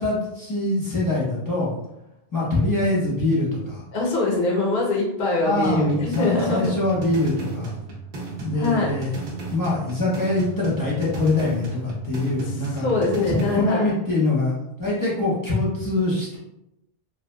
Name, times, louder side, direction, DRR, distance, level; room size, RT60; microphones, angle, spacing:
voice 1, 0.0-1.7 2.3-3.8 5.4-7.7 8.4-9.2 9.5-12.9 13.3-14.5 14.8-16.4, left 2 dB, 20° left, -7 dB, 0.8 m, -23 dB
voice 2, 3.9-6.7 8.5-8.9 12.8-13.9, left 2 dB, 55° left, -2 dB, 0.7 m, -23 dB
sound 1, 5.6-13.6, right 3 dB, 65° right, 0.8 m, -35 dB
2.8 x 2.4 x 2.2 m, 0.88 s
omnidirectional pair, 1.1 m